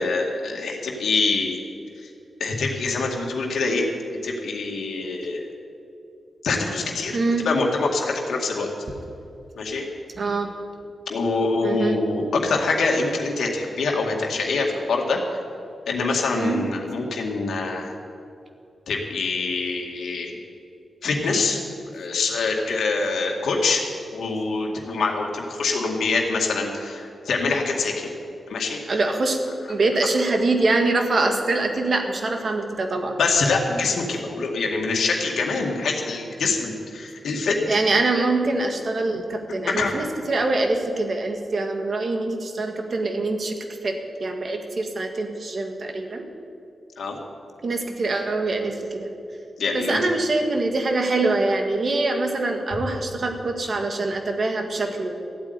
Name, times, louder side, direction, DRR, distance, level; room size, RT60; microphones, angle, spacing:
voice 1, 0.0-1.6 2.4-3.9 4.2-5.5 6.4-7.2 7.4-8.7 9.6-9.8 11.1-15.2 15.9-17.9 18.9-20.3 21.0-21.6 21.9-23.8 24.1-28.1 28.5-28.8 33.2-37.6 39.8-40.0 47.0-47.2 49.6-50.0, left 3 dB, 80° left, 0 dB, 2.1 m, -25 dB
voice 2, 7.1-7.5 10.2-10.5 11.6-12.0 16.4-16.7 28.8-29.4 29.7-33.2 37.7-46.2 47.6-49.1 49.7-55.1, right 2 dB, 40° right, 4 dB, 1.6 m, -24 dB
14.0 x 8.6 x 9.5 m, 2.5 s
wide cardioid pair, 180°, 0 cm